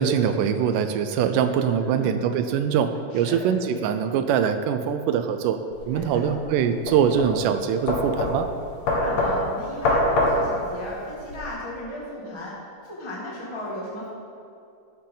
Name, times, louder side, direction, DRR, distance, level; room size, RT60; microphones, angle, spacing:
voice 1, 0.0-5.6 5.9-8.5, right 8 dB, 80° right, 9 dB, 2.1 m, -23 dB
voice 2, 1.7-2.2 3.1-3.4 5.9-6.3 8.8-12.6 12.8-14.1, left 1 dB, 10° left, -6 dB, 1.3 m, -35 dB
sound 1, 5.7-11.4, left 1 dB, 55° left, 2.7 m, -25 dB
11.5 x 11.5 x 3.9 m, 2.5 s
omnidirectional pair, 4.1 m